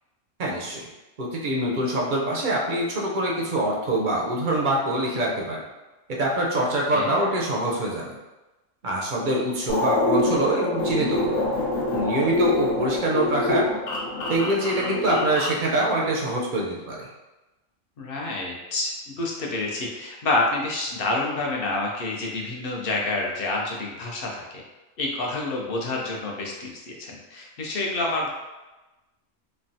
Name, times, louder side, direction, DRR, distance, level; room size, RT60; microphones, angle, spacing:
voice 1, 0.4-0.9 1.2-5.6 6.2-8.2 8.8-11.4 11.9-13.7 14.3-17.1, right 1 dB, 60° right, -2 dB, 0.5 m, -25 dB
sound 1, 9.7-15.6, left 2 dB, 85° left, 1.0 m, -25 dB
voice 2, 18.0-24.6 25.0-28.3, left 2 dB, 60° left, -2 dB, 0.7 m, -28 dB
3.1 x 2.1 x 2.6 m, 1.1 s
omnidirectional pair, 1.3 m